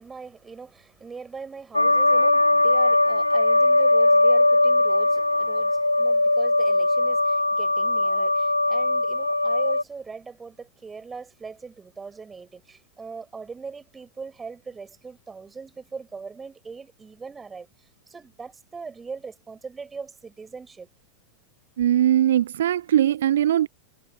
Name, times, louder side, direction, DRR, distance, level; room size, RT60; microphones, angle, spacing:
voice 1, 0.0-20.9, right 5 dB, 15° right, 7.7 m, -40 dB
sound 1, 1.7-9.8, left 2 dB, 85° left, 0.3 m, -20 dB
voice 2, 21.8-23.7, right 11 dB, 60° right, 0.9 m, -20 dB
figure-of-eight pair, 90°, 0 cm